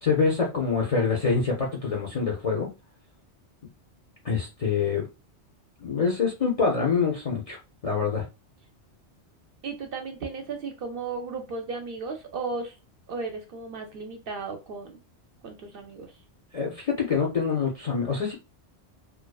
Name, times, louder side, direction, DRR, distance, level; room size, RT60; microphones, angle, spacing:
voice 1, 0.0-2.7 4.2-5.1 5.8-8.2 16.5-18.3, left 5 dB, 45° left, -2 dB, 0.5 m, -25 dB
voice 2, 9.6-12.7 13.1-15.0 15.4-16.1, right 4 dB, 60° right, 4 dB, 0.7 m, -35 dB
2.5 x 2.3 x 2.2 m, 0.28 s
omnidirectional pair, 1.2 m